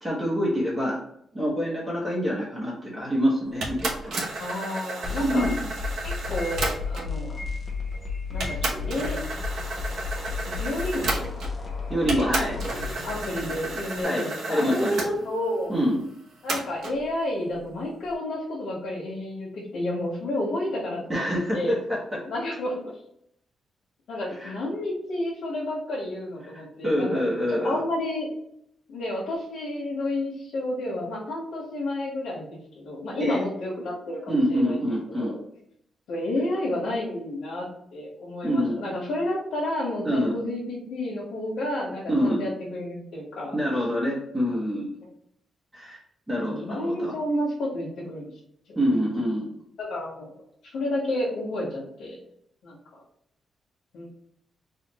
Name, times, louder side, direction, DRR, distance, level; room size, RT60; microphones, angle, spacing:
voice 1, 0.0-1.0 1.3-4.2 5.2-5.7 11.9-12.6 14.0-15.0 15.7-16.0 21.1-21.8 22.1-22.2 24.4-24.6 26.8-27.8 33.2-33.4 34.3-35.3 38.4-38.8 40.0-40.3 42.1-42.4 43.5-44.9 45.7-46.0 46.3-47.1 48.8-49.5, equal, 10° right, -6 dB, 0.9 m, -26 dB
sound 1, 3.6-7.2 7.9-8.0 8.4-11.7 12.1-15.1 16.5-17.0, right 2 dB, 70° right, 0.9 m, -32 dB
voice 2, 4.4-5.5 6.0-7.4 8.3-9.2 10.4-11.3 12.1-12.3 12.6-12.7 13.0-15.7 16.4-21.8 22.2-23.0 24.1-28.3 28.9-35.4 36.1-43.5 46.4-48.3 49.8-50.3 50.7-52.2 52.6-52.8 53.9-54.1, left 1 dB, 80° left, -5 dB, 1.2 m, -31 dB
sound 2, 5.0-14.0, left 4 dB, 20° left, 0.8 m, -33 dB
4.2 x 2.4 x 3.0 m, 0.71 s
wide cardioid pair, 175°, 0 cm